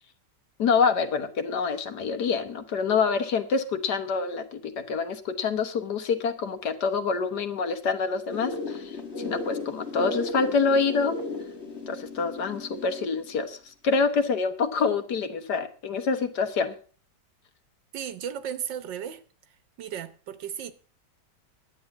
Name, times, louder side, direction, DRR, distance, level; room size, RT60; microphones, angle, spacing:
voice 1, 0.6-4.6 4.9-11.1 11.9-16.7, left 5 dB, 65° left, 1.8 m, -26 dB
sound 1, 8.3-13.3, left 3 dB, 40° left, 1.8 m, -35 dB
voice 2, 17.9-19.2 19.8-20.7, right 9 dB, 85° right, 1.7 m, -35 dB
11.0 x 8.2 x 7.1 m
omnidirectional pair, 1.9 m